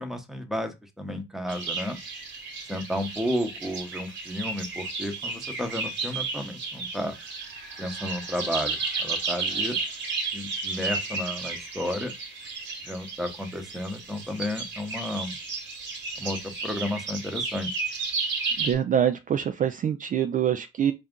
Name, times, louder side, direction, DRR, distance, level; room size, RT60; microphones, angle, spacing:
voice 1, 0.0-2.0 2.7-7.2 7.8-9.8 10.3-12.1 12.8-15.3 16.2-17.7, left 1 dB, ahead, 0.9 m, -32 dB
sound 1, 1.5-18.7, right 4 dB, 65° right, 1.3 m, -33 dB
voice 2, 18.6-20.9, right 9 dB, 40° right, 0.4 m, -25 dB
4.1 x 2.5 x 3.6 m
cardioid pair, 90°, 20 cm